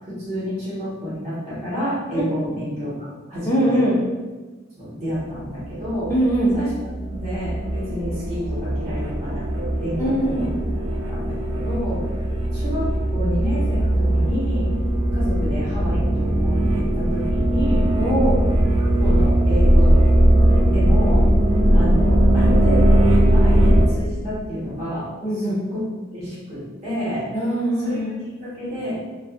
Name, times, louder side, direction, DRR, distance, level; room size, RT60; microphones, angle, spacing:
voice 1, 0.0-3.8 4.8-6.1 6.5-6.7 7.1-10.5 11.1-12.1 12.5-14.7 15.1-17.9 18.8-20.0 20.6-21.2 21.7-23.1 23.4-25.1 25.3-27.4 27.8-29.0, equal, 35° right, -11 dB, 1.2 m, -29 dB
voice 2, 3.5-4.0 6.1-6.6 10.0-10.5 18.0-18.3 25.2-25.6 27.3-28.1, right 1 dB, 15° left, -6 dB, 0.5 m, -21 dB
sound 1, 5.6-23.9, right 1 dB, 70° right, 0.4 m, -19 dB
2.4 x 2.3 x 2.4 m, 1.2 s
head